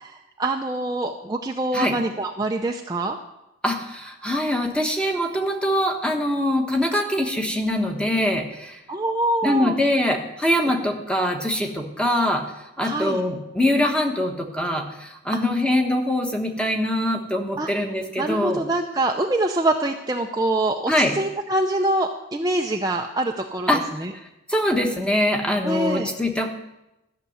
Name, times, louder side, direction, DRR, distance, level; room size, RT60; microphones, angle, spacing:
voice 1, 0.0-3.2 8.9-9.8 10.5-10.7 12.8-13.2 15.3-15.4 17.6-17.7 18.2-24.1 25.6-26.1, right 2 dB, 20° right, 2 dB, 0.6 m, -25 dB
voice 2, 3.6-8.8 9.4-12.4 12.8-18.6 20.9-21.1 23.7-23.8 24.5-26.5, left 1 dB, 5° left, 3 dB, 1.2 m, -23 dB
14.0 x 6.8 x 9.4 m, 0.94 s
head